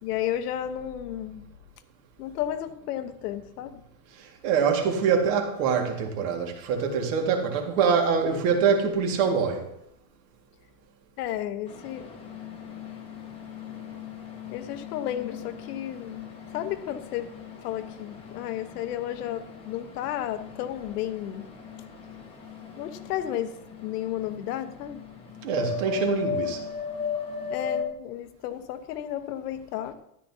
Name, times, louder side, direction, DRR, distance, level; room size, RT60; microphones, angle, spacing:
voice 1, 0.0-1.5 2.2-3.8 11.2-12.1 14.5-16.2 16.5-17.3 17.6-21.5 22.8-25.0 27.5-29.9, left 11 dB, 70° left, 1.1 m, -33 dB
voice 2, 4.2-9.7 25.4-26.6, right 6 dB, 55° right, 2.0 m, -24 dB
sound 1, 11.6-27.8, left 6 dB, 10° left, 1.1 m, -38 dB
13.0 x 11.5 x 2.8 m
supercardioid pair, 180°, 48 cm